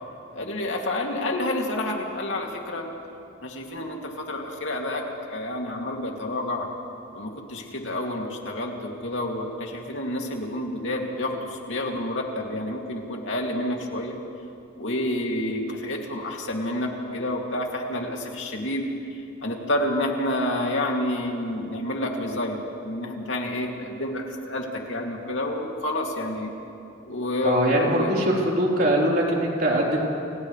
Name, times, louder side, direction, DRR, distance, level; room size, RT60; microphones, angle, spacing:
voice 1, 0.3-2.8 3.4-5.0 5.3-6.7 7.1-14.2 14.8-18.8 19.4-26.5 27.0-28.1, left 1 dB, 65° left, 0 dB, 2.6 m, -29 dB
voice 2, 27.4-30.0, right 1 dB, 45° right, -3 dB, 4.0 m, -22 dB
29.5 x 28.5 x 3.3 m, 2.7 s
head